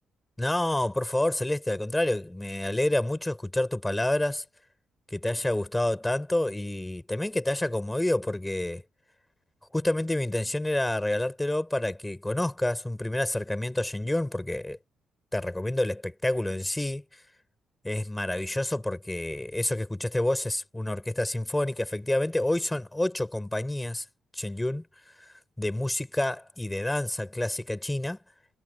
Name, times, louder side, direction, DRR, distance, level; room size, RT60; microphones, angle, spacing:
voice 1, 0.4-4.4 5.1-8.8 9.7-14.8 15.3-17.0 17.8-24.0 24.3-24.8 25.6-28.2, left 1 dB, 10° left, 6.3 m, -28 dB
cardioid pair, 90°, 0 cm